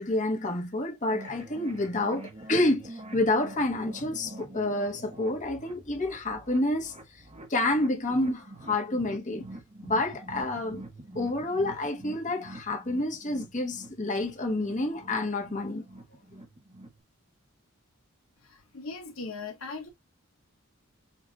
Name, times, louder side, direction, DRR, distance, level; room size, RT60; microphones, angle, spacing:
voice 1, 0.0-7.2 7.5-9.4 9.8-10.8 11.1-15.8, left 2 dB, 35° left, 1.2 m, -29 dB
sound 1, 1.1-17.0, right 1 dB, 30° right, 1.0 m, -46 dB
voice 2, 18.4-19.9, left 4 dB, 80° left, 1.1 m, -39 dB
7.1 x 2.6 x 2.2 m
head